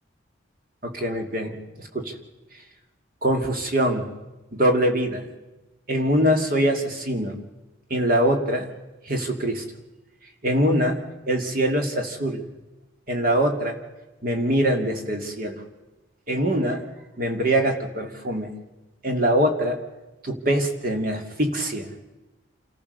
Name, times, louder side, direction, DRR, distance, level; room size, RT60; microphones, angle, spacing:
voice 1, 0.8-2.1 3.2-4.1 4.5-5.2 5.9-7.4 7.9-8.7 9.1-9.6 10.4-11.0 11.3-12.4 13.1-13.8 14.2-15.6 16.3-16.8 17.2-18.6 19.0-19.8 20.2-21.9, right 1 dB, 45° right, 4 dB, 2.5 m, -23 dB
28.0 x 14.5 x 6.7 m, 1.1 s
head